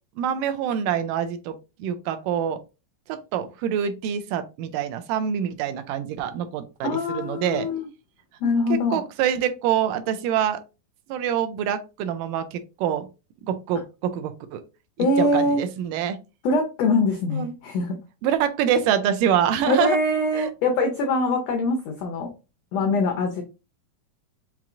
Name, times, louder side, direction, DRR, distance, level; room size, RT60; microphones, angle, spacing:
voice 1, 0.2-1.5 1.8-2.6 3.1-7.7 8.9-10.6 11.1-13.1 13.4-14.6 15.2-16.2 17.3-17.5 18.2-20.0 20.4-20.5, right 9 dB, 80° right, 9 dB, 2.1 m, -25 dB
voice 2, 6.8-7.9 8.4-9.0 15.0-15.6 16.4-18.0 19.7-22.3 22.7-23.4, left 2 dB, 90° left, 4 dB, 1.4 m, -23 dB
5.8 x 2.9 x 2.5 m, 0.29 s
omnidirectional pair, 3.9 m